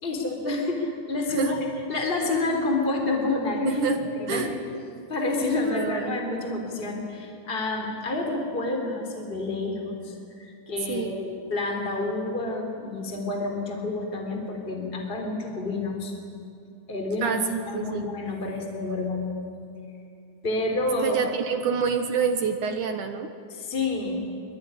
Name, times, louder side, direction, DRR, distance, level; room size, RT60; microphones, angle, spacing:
voice 1, 0.0-3.8 4.2-4.5 5.1-16.1 16.9-17.4 17.7-19.3 20.4-21.2 23.5-24.4, left 2 dB, 15° left, 2 dB, 3.4 m, -29 dB
voice 2, 3.7-4.0 4.3-4.6 5.7-6.2 10.9-11.2 17.2-18.1 21.0-23.3, right 6 dB, 65° right, 6 dB, 2.4 m, -27 dB
25.0 x 23.5 x 9.9 m, 2.5 s
omnidirectional pair, 4.5 m